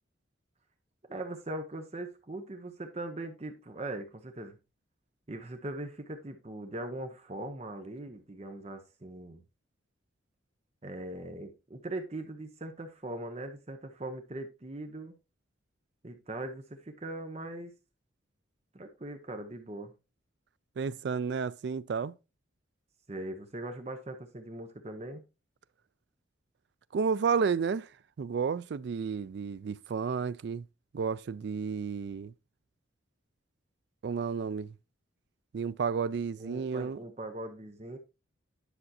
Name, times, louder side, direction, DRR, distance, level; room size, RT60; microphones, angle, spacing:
voice 1, 1.1-4.6 5.3-9.4 10.8-15.1 16.0-17.7 18.7-19.9 23.1-25.2 36.4-38.0, right 1 dB, 30° right, 0.7 m, -40 dB
voice 2, 20.8-22.1 26.9-27.9 28.2-30.6 30.9-32.3 34.0-34.7 35.5-37.0, right 5 dB, 60° right, 0.3 m, -31 dB
10.0 x 5.9 x 2.7 m
head